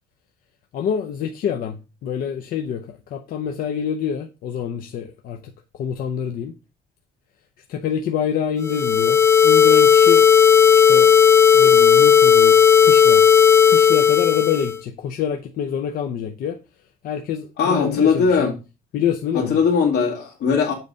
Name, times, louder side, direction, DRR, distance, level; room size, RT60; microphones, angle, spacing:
voice 1, 0.7-5.4 5.7-6.5 7.7-10.3 10.7-11.1 11.5-13.2 13.7-16.6 17.0-18.5 18.9-19.6, left 8 dB, 60° left, 0.7 m, -26 dB
sound 1, 8.6-14.8, left 7 dB, 15° left, 0.4 m, -13 dB
voice 2, 17.6-18.5 19.3-20.7, left 5 dB, 85° left, 1.9 m, -19 dB
7.6 x 4.0 x 5.0 m
cardioid pair, 165°, 16 cm